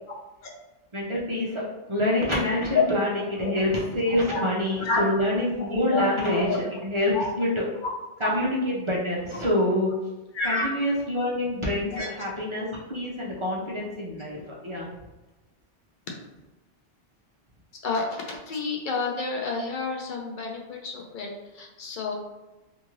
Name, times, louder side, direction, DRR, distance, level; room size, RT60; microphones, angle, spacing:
voice 1, 0.9-1.6 1.9-7.5 8.2-9.9 10.4-14.9, left 1 dB, 45° right, -4 dB, 0.4 m, -26 dB
voice 2, 5.6-6.6 7.1-7.3 7.8-7.9 8.2-8.3 9.3-9.4 10.3-10.6 11.9-12.1 17.8-21.3 21.5-22.1, left 4 dB, 55° left, 0 dB, 0.6 m, -29 dB
2.7 x 2.4 x 3.0 m, 1.1 s
omnidirectional pair, 1.2 m